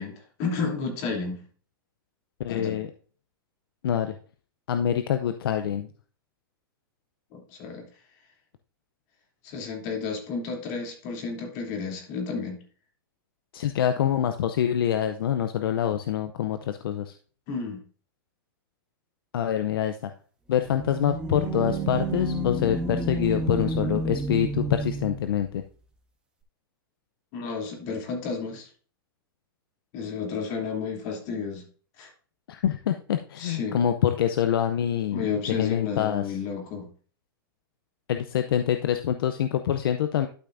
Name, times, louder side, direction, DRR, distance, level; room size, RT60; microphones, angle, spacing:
voice 1, 0.0-1.4 2.5-2.8 7.3-7.8 9.4-12.6 17.5-17.8 27.3-28.7 29.9-31.6 32.0-32.1 33.4-33.8 35.1-36.9, left 5 dB, 50° left, 1 dB, 3.1 m, -32 dB
voice 2, 2.4-2.9 3.8-4.2 4.7-5.9 13.5-17.1 19.3-20.1 20.5-25.6 32.5-35.3 35.6-36.2 38.1-40.3, left 9 dB, 80° left, 8 dB, 0.6 m, -25 dB
sound 1, 20.5-25.4, right 2 dB, 10° right, 1.5 m, -30 dB
12.0 x 5.8 x 2.6 m, 0.41 s
hypercardioid pair, 135°, 12 cm